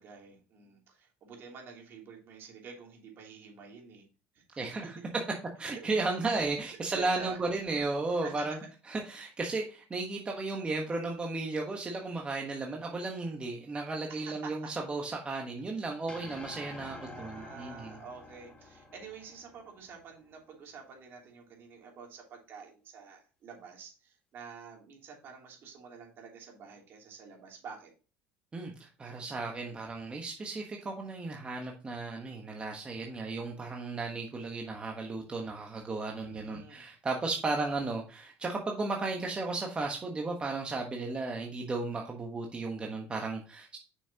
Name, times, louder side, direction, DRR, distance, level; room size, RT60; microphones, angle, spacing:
voice 1, 0.0-4.0 4.3-4.4 5.6-6.0 6.9-7.4 8.2-8.4 14.1-14.7 16.8-27.9 36.1-36.9, right 5 dB, 50° right, 0 dB, 2.9 m, -48 dB
voice 2, 4.6-5.0 5.6-8.6 8.8-18.0 28.5-43.8, right 3 dB, 20° right, 1 dB, 1.2 m, -34 dB
sound 1, 16.1-20.5, left 3 dB, 20° left, 1.2 m, -49 dB
7.1 x 6.3 x 2.9 m, 0.35 s
supercardioid pair, 105°, 5 cm